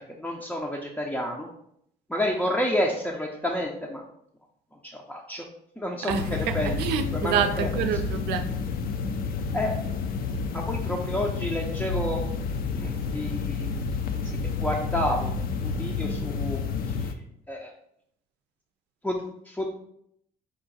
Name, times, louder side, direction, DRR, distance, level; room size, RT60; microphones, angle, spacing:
voice 1, 0.0-1.5 2.1-4.0 5.1-5.4 5.8-6.8 7.1-7.7 9.5-9.7 10.5-12.2 12.7-13.8 14.1-14.2 14.6-15.3 15.6-16.6 17.5-17.7 19.0-19.7, left 1 dB, 5° left, -2 dB, 0.5 m, -30 dB
voice 2, 6.0-8.5, right 8 dB, 85° right, 7 dB, 0.5 m, -27 dB
sound 1, 6.1-17.1, left 5 dB, 60° left, 0.5 m, -30 dB
4.7 x 2.5 x 3.9 m, 0.72 s
cardioid pair, 110°, 17 cm